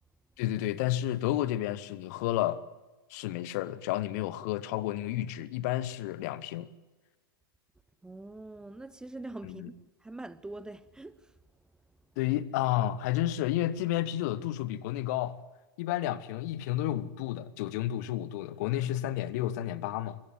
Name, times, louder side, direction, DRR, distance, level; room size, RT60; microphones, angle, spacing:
voice 1, 0.4-2.6 3.1-6.7 9.4-9.7 12.2-15.4 15.8-20.2, left 13 dB, 50° left, 1.2 m, -31 dB
voice 2, 8.0-11.3, right 2 dB, 5° right, 0.8 m, -44 dB
25.0 x 15.0 x 7.8 m
figure-of-eight pair, 95°, 12 cm